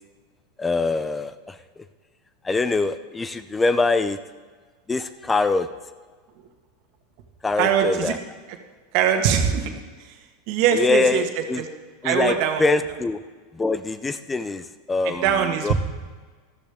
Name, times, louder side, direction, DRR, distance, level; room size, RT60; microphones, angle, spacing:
voice 1, 0.6-1.6 2.4-4.2 4.9-5.7 7.4-8.2 10.7-11.6 12.0-13.2 13.5-15.7, left 3 dB, 15° left, 12 dB, 0.5 m, -24 dB
voice 2, 7.6-8.1 8.9-9.7 10.1-10.2 10.5-11.2 11.6-11.7 12.0-12.6 15.0-15.7, right 8 dB, 60° right, 5 dB, 1.6 m, -21 dB
13.5 x 13.0 x 3.6 m, 1.4 s
supercardioid pair, 120°, 0 cm